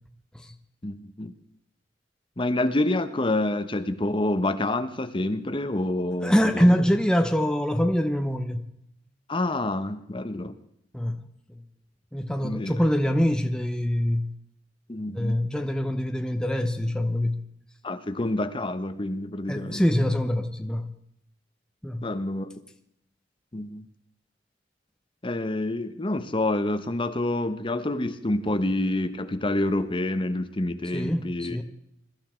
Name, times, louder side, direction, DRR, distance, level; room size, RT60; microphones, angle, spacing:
voice 1, 0.8-1.3 2.4-6.7 9.3-10.5 12.4-12.7 14.9-15.4 17.8-19.8 22.0-22.5 23.5-23.8 25.2-31.6, left 1 dB, 30° left, 1.0 m, -27 dB
voice 2, 6.2-8.6 10.9-11.2 11.5-11.6 12.1-14.3 15.1-17.4 19.5-20.9 21.8-22.0 30.9-31.6, equal, 5° left, 0.8 m, -24 dB
22.0 x 12.5 x 4.4 m
head